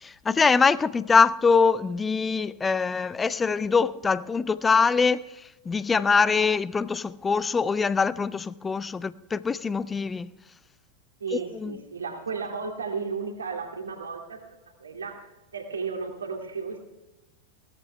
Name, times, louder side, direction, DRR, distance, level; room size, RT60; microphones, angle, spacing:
voice 1, 0.0-5.2 5.7-10.3 11.6-11.7, left 5 dB, 15° left, 0.4 m, -23 dB
voice 2, 11.2-14.4 14.8-16.8, right 5 dB, 70° right, 2.4 m, -34 dB
17.0 x 13.5 x 3.3 m
figure-of-eight pair, 90°, 0 cm